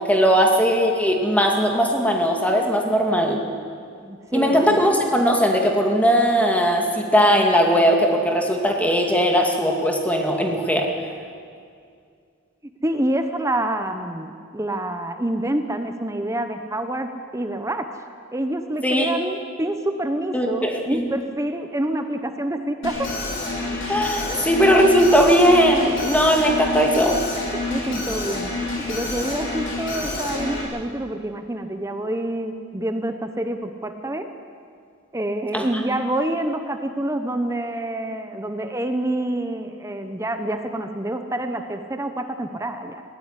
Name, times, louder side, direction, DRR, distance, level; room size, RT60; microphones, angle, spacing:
voice 1, 0.0-3.4 4.3-10.9 18.8-19.1 20.3-21.0 23.9-27.2 35.5-35.6, equal, 5° left, 1 dB, 2.4 m, -19 dB
voice 2, 4.0-4.6 12.8-17.9 18.3-23.1 24.3-24.5 27.7-34.3 35.1-43.0, right 1 dB, 15° right, 7 dB, 0.9 m, -27 dB
Alarm, 22.8-30.6, left 2 dB, 65° left, 5.7 m, -28 dB
20.0 x 16.0 x 9.9 m, 2.3 s
head